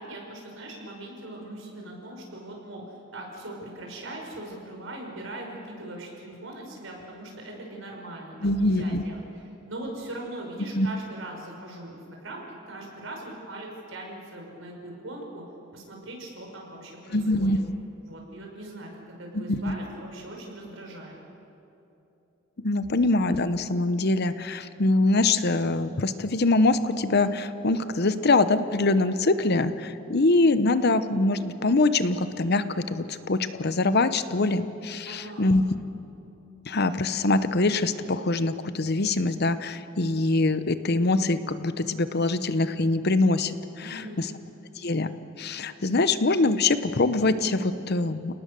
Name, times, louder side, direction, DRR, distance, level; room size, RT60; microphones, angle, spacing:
voice 1, 0.0-2.8 3.1-9.2 9.7-15.4 15.7-17.6 18.0-21.2 35.1-35.5 43.8-44.4, right 1 dB, 75° right, 0 dB, 5.5 m, -40 dB
voice 2, 8.4-9.0 10.7-10.9 17.1-17.6 19.3-19.7 22.6-35.6 36.7-44.3 44.8-45.1 45.4-48.3, left 2 dB, 55° left, 12 dB, 0.9 m, -24 dB
30.0 x 18.5 x 6.9 m, 2.9 s
head